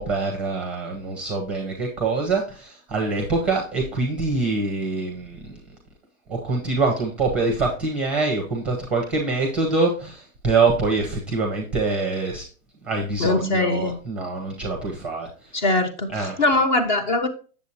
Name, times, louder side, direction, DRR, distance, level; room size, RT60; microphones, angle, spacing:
voice 1, 0.0-5.6 6.3-12.4 12.8-15.6 16.1-16.4, right 3 dB, 5° right, 2 dB, 0.6 m, -25 dB
voice 2, 13.2-14.0 15.5-17.3, left 2 dB, 35° left, 8 dB, 0.6 m, -22 dB
8.1 x 7.0 x 2.8 m, 0.38 s
hypercardioid pair, 165°, 43 cm